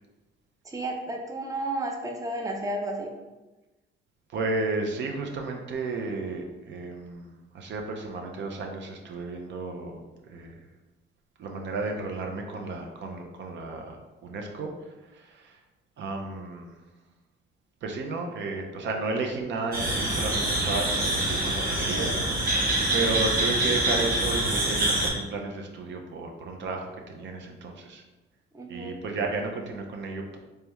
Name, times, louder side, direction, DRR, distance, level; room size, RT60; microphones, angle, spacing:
voice 1, 0.6-3.1 28.5-29.0, right 1 dB, 15° right, 2 dB, 0.6 m, -32 dB
voice 2, 4.3-10.6 11.4-15.6 16.0-16.8 17.8-22.6 22.9-28.0 28.7-30.4, right 3 dB, 65° right, 3 dB, 0.6 m, -33 dB
sound 1, 19.7-25.1, right 1 dB, 45° right, 1.0 m, -25 dB
3.4 x 3.2 x 3.0 m, 1.1 s
cardioid pair, 90°, 20 cm